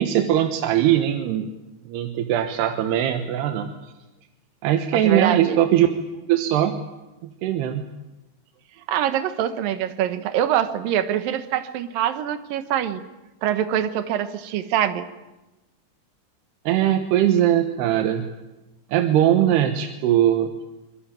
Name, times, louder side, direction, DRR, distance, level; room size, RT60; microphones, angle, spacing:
voice 1, 0.0-1.5 1.9-3.7 4.6-5.9 6.1-6.8 7.4-7.8 16.7-18.3 18.9-20.5, right 11 dB, 85° right, 6 dB, 3.3 m, -20 dB
voice 2, 4.9-5.6 8.9-13.0 13.4-15.1, right 10 dB, 65° right, 10 dB, 2.8 m, -24 dB
25.0 x 22.0 x 9.0 m, 1.0 s
omnidirectional pair, 4.6 m